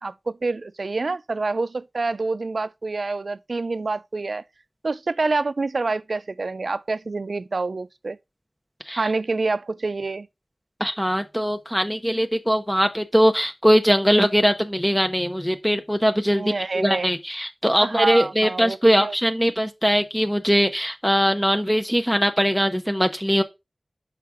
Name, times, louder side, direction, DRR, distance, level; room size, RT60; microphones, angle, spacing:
voice 1, 0.0-4.4 4.8-8.2 9.0-10.3 16.4-17.1 17.8-19.1, right 3 dB, 80° right, 0.3 m, -27 dB
voice 2, 10.8-23.4, equal, 5° left, 0.7 m, -21 dB
5.7 x 4.7 x 4.8 m
wide cardioid pair, 60°, 0 cm